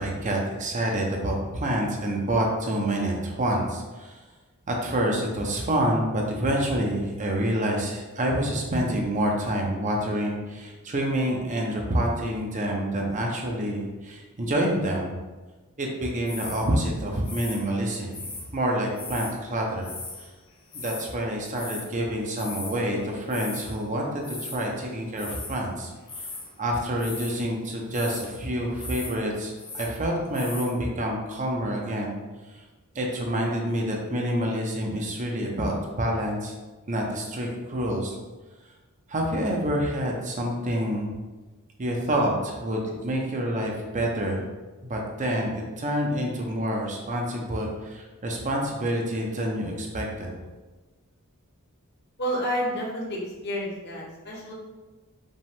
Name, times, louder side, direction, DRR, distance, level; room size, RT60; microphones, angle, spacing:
voice 1, 0.0-4.2 4.7-15.2 15.8-18.2 18.5-19.9 20.7-25.9 26.6-32.1 32.9-36.5 36.9-38.1 39.1-41.1 41.8-44.4 44.8-50.3, right 1 dB, 35° right, 0 dB, 0.6 m, -27 dB
sound 1, 16.3-16.7 17.3-18.5 19.0-19.3 19.8-20.3 20.5-21.1 21.5-21.9 22.4-22.9 23.1-23.8 24.2-24.7 25.2-25.6 26.0-26.5 27.0-27.4 27.9-28.3 28.7-29.2 29.4-29.9 30.3-30.7, left 3 dB, 25° left, 0.8 m, -38 dB
voice 2, 52.2-54.5, equal, 50° left, -3 dB, 1.0 m, -30 dB
5.2 x 2.4 x 3.5 m, 1.2 s
head